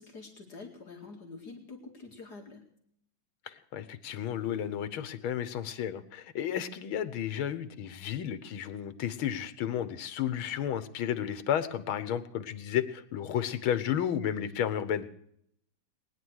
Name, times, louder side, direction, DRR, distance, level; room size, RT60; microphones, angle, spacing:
voice 1, 0.0-2.7, left 3 dB, 50° left, 1 dB, 2.8 m, -46 dB
voice 2, 3.5-15.1, left 10 dB, 90° left, 14 dB, 1.9 m, -32 dB
20.5 x 10.5 x 6.3 m, 0.70 s
omnidirectional pair, 2.2 m